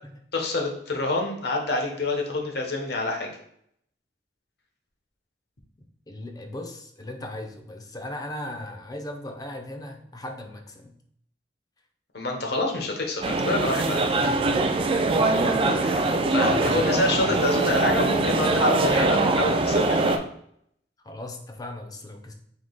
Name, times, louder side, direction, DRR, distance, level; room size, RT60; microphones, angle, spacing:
voice 1, 0.3-3.3 12.1-14.1 15.8-20.2, left 2 dB, 65° left, 2 dB, 0.9 m, -27 dB
voice 2, 6.1-10.9 14.3-14.8 15.4-16.1 16.3-17.4 21.0-22.3, left 1 dB, 20° left, 4 dB, 0.5 m, -38 dB
sound 1, 13.2-20.2, right 2 dB, 30° right, 0.3 m, -22 dB
3.7 x 2.8 x 3.8 m, 0.69 s
head